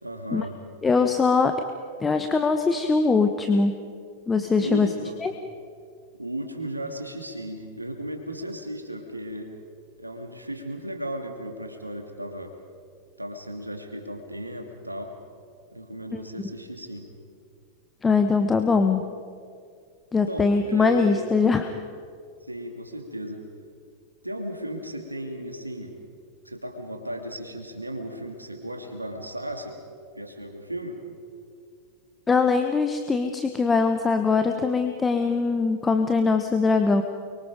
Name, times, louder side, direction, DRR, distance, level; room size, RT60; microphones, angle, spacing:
voice 1, 0.0-0.6 4.5-5.2 6.2-9.5 10.0-12.6 13.2-15.1 15.7-17.1 20.3-21.3 22.4-23.4 24.2-25.9 26.4-29.8 30.1-31.0, right 1 dB, 85° right, 4 dB, 2.6 m, -35 dB
voice 2, 0.8-1.5 2.0-3.7 4.3-4.9 5.2-5.3 16.1-16.2 18.0-19.0 20.1-21.6 32.3-37.0, left 4 dB, 15° left, 7 dB, 1.2 m, -22 dB
29.5 x 23.5 x 5.2 m, 2.2 s
figure-of-eight pair, 90°, 0 cm